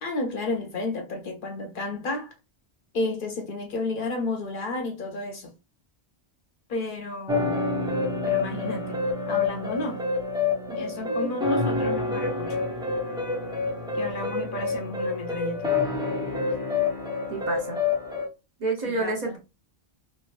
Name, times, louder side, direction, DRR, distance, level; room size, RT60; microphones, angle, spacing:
voice 1, 0.0-2.3 2.9-5.5 6.7-7.6 8.2-9.0 9.3-10.0 10.8-12.7 13.9-15.7 18.8-19.4, left 2 dB, 60° left, 0.7 m, -32 dB
sound 1, 7.3-18.3, left 3 dB, 5° right, 0.4 m, -27 dB
voice 2, 10.7-11.3 17.3-17.8 18.6-19.4, right 3 dB, 45° right, 0.8 m, -30 dB
3.0 x 2.2 x 2.4 m
omnidirectional pair, 1.1 m